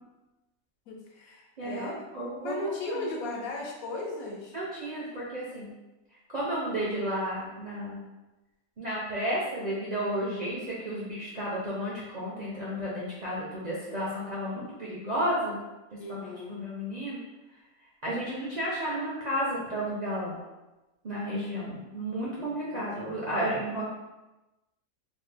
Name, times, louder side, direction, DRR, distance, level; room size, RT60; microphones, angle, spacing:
voice 1, 0.9-2.0 2.4-4.5 16.0-16.6 22.4-23.2, left 2 dB, 85° left, -1 dB, 1.1 m, -37 dB
voice 2, 1.6-2.6 2.9-3.3 4.5-5.7 6.3-8.0 8.8-15.6 16.1-16.2 16.5-17.2 18.0-20.4 21.0-23.9, equal, 55° right, -7 dB, 0.4 m, -32 dB
3.0 x 2.1 x 3.2 m, 1.0 s
omnidirectional pair, 1.5 m